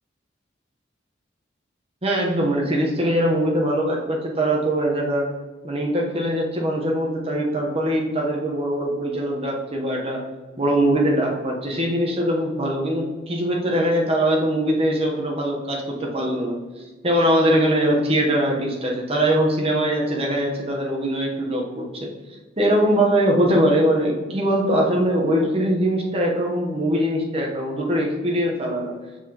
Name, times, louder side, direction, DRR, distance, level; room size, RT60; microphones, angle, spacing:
voice 1, 2.0-5.3 5.6-10.2 10.6-22.1 22.6-28.9, right 1 dB, 30° right, -1 dB, 1.0 m, -22 dB
7.3 x 5.6 x 3.0 m, 1.2 s
head